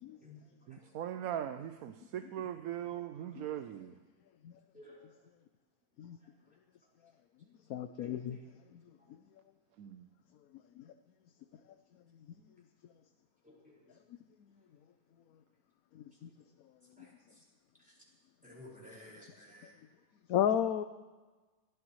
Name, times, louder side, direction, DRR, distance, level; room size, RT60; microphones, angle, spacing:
voice 1, 0.1-0.8 3.2-3.4 4.7-5.2 6.0-6.1 8.0-8.4 13.4-13.9 17.0-17.4 17.8-18.0 18.4-19.7, left 1 dB, 5° right, -4 dB, 5.1 m, -56 dB
voice 2, 0.7-4.0 9.8-10.1, right 10 dB, 75° right, 9 dB, 1.1 m, -40 dB
voice 3, 7.7-8.4 8.7-8.8 10.8-10.9 15.9-16.3 17.0-17.1 20.3-20.8, left 10 dB, 75° left, 9 dB, 1.1 m, -33 dB
22.5 x 15.5 x 3.2 m, 1.3 s
omnidirectional pair, 1.6 m